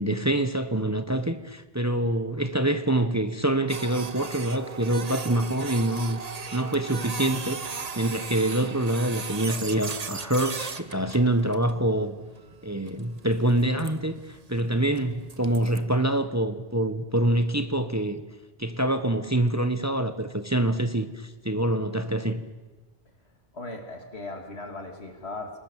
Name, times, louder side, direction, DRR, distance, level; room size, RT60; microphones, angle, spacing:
voice 1, 0.0-6.2 6.5-7.6 8.0-12.2 12.6-18.2 18.6-22.4, right 1 dB, 15° right, 1.1 m, -25 dB
Printer, 3.7-15.8, right 5 dB, 40° right, 1.1 m, -37 dB
voice 2, 23.5-25.6, left 2 dB, 75° left, 3.2 m, -38 dB
29.5 x 19.5 x 7.4 m
omnidirectional pair, 1.1 m